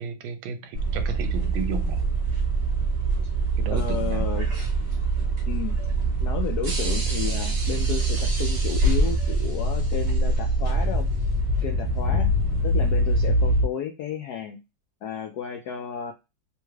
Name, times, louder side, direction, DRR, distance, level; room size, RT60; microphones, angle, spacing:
voice 1, 0.0-2.0 3.6-4.2 12.1-12.3, right 5 dB, 80° right, 1.3 m, -33 dB
sound 1, 0.7-13.7, right 2 dB, 40° right, 1.2 m, -24 dB
voice 2, 3.7-4.5 5.5-5.8 6.2-11.1 11.6-12.3 12.6-14.6 15.0-16.1, left 8 dB, 80° left, 0.9 m, -32 dB
3.4 x 2.3 x 3.1 m
omnidirectional pair, 2.2 m